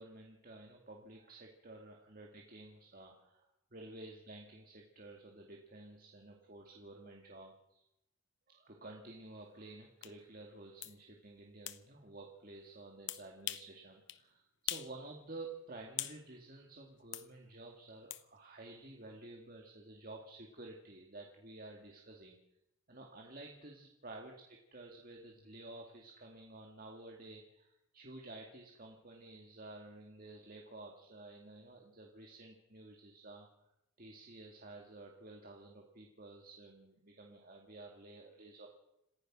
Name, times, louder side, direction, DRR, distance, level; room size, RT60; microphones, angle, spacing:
voice 1, 0.0-7.8 8.5-22.4 22.9-33.5 34.0-38.7, right 2 dB, 40° right, 1 dB, 2.3 m, -52 dB
sound 1, 10.0-10.1 10.8-11.0 11.7-11.8 13.1-13.7 14.1-14.2 14.7-14.9 15.3-16.2 17.1-17.3 18.1-18.2, left 13 dB, 55° left, 0.9 m, -41 dB
27.0 x 15.5 x 6.2 m, 0.86 s
head